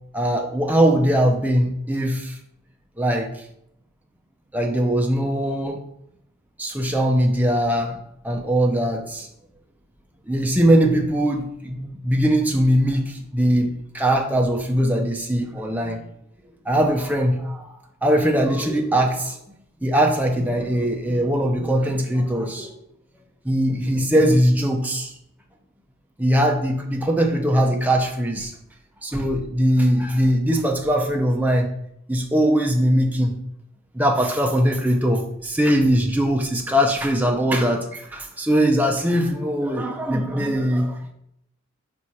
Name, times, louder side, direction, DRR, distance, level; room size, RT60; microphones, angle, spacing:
voice 1, 0.1-2.4 3.0-3.4 4.5-5.8 6.6-8.0 8.2-9.3 10.3-16.0 16.7-19.4 19.8-22.7 23.4-25.1 26.2-28.5 29.0-31.7 32.1-33.4 33.9-41.1, equal, 10° right, 1 dB, 0.6 m, -21 dB
5.4 x 4.3 x 4.8 m, 0.75 s
head